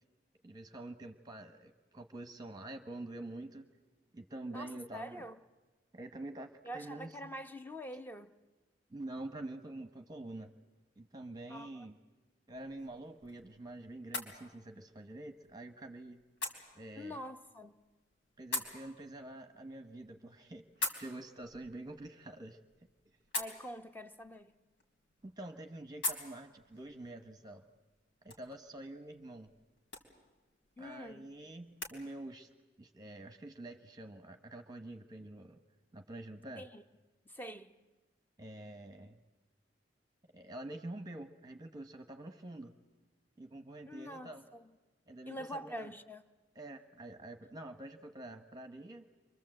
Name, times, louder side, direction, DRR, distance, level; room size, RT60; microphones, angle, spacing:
voice 1, 0.4-3.7 4.1-5.2 5.9-7.1 8.9-10.6 11.0-12.0 12.5-16.2 16.7-17.2 18.4-22.6 25.2-27.6 28.2-29.5 30.8-32.5 32.8-35.6 35.9-36.7 38.4-39.2 40.3-42.7 43.4-44.4 45.1-45.9 46.5-49.1, right 1 dB, 20° right, 1.0 m, -47 dB
voice 2, 4.5-5.4 6.6-8.3 11.5-11.9 17.0-17.8 23.3-24.5 30.8-31.3 36.6-36.8 37.2-37.7 43.9-44.7 45.3-46.2, equal, 10° left, 0.9 m, -45 dB
sound 1, 12.5-32.0, left 2 dB, 85° left, 3.8 m, -46 dB
29.5 x 24.0 x 7.7 m
head